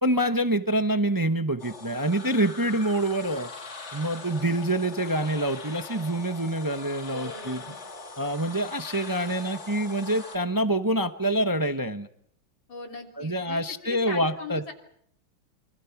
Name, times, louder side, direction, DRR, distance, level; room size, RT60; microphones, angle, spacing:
voice 1, 0.0-3.5 3.9-7.6 8.2-12.1 13.2-14.7, right 1 dB, 30° right, 8 dB, 0.4 m, -26 dB
sound 1, 1.6-10.4, left 3 dB, 40° left, 2.0 m, -42 dB
voice 2, 7.1-7.8 12.7-14.7, left 4 dB, 80° left, 2 dB, 4.0 m, -40 dB
27.0 x 25.5 x 5.9 m, 0.69 s
omnidirectional pair, 2.1 m